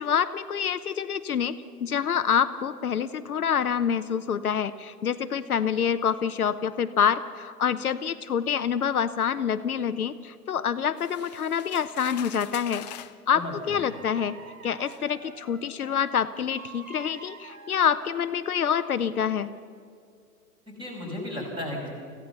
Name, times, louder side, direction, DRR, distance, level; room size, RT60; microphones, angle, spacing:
voice 1, 0.0-12.8 13.3-14.4 14.6-19.5, left 8 dB, 65° left, 11 dB, 0.9 m, -26 dB
sound 1, 11.0-13.2 14.2-14.3 14.9-15.0, left 13 dB, 30° left, 0.6 m, -43 dB
sound 2, 11.1-12.6 13.5-16.1 16.5-18.9 19.3-19.7, right 5 dB, 60° right, 2.4 m, -49 dB
voice 2, 13.3-13.8 20.7-21.9, left 1 dB, 10° right, 0 dB, 5.5 m, -34 dB
25.0 x 15.5 x 6.9 m, 2.3 s
figure-of-eight pair, 115°, 46 cm